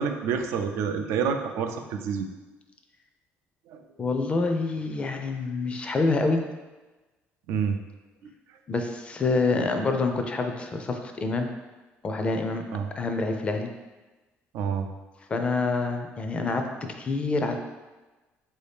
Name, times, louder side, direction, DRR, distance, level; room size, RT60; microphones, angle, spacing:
voice 1, 0.0-2.3 3.7-3.8 7.5-7.8 8.2-8.3 12.7-12.9 14.5-14.9, right 6 dB, 85° right, 6 dB, 0.4 m, -28 dB
voice 2, 4.0-6.4 8.7-11.5 12.0-12.7 12.9-13.7 15.3-17.6, left 3 dB, 25° left, 5 dB, 0.4 m, -27 dB
4.3 x 2.7 x 3.4 m, 1.2 s
cardioid pair, 130°, 4 cm